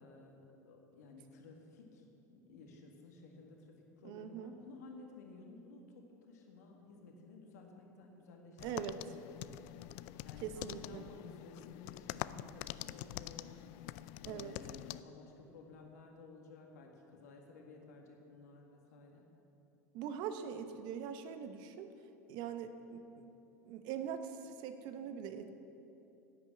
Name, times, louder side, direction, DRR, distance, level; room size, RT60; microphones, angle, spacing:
voice 1, 0.0-8.9 9.4-9.6 10.2-13.5 14.2-19.3, left 3 dB, 80° left, 1 dB, 1.8 m, -55 dB
voice 2, 4.0-4.5 8.6-9.0 10.4-11.0 14.2-14.5 19.9-21.9 22.3-23.2 23.6-25.5, right 8 dB, 60° right, 9 dB, 1.0 m, -42 dB
sound 1, 8.6-15.0, left 15 dB, 60° left, 0.4 m, -45 dB
11.5 x 8.6 x 7.3 m, 2.9 s
hypercardioid pair, 85°, 9 cm